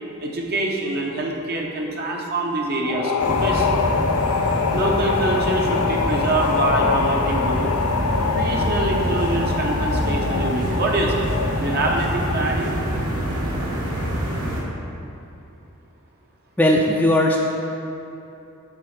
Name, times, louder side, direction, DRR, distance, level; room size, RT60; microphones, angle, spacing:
voice 1, 0.2-3.7 4.7-7.7 8.3-11.3 11.6-12.8, right 2 dB, 45° right, -1 dB, 0.8 m, -25 dB
sound 1, 2.8-12.6, left 5 dB, 85° left, 0.4 m, -24 dB
sound 2, 3.2-14.6, equal, 75° right, 1.3 m, -26 dB
voice 2, 16.6-17.4, left 1 dB, 5° left, -2 dB, 0.4 m, -17 dB
7.4 x 4.1 x 6.4 m, 2.8 s
head